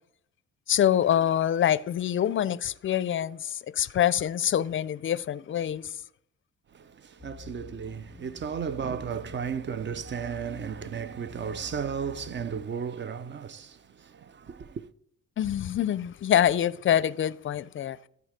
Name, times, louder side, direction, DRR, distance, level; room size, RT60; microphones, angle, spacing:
voice 1, 0.7-6.0 15.4-18.0, left 10 dB, 40° left, 0.5 m, -25 dB
voice 2, 6.7-14.9, right 7 dB, 40° right, 0.6 m, -34 dB
sound 1, 7.2-12.7, left 6 dB, 5° left, 0.7 m, -48 dB
14.0 x 4.8 x 5.1 m
cardioid pair, 90°, 30 cm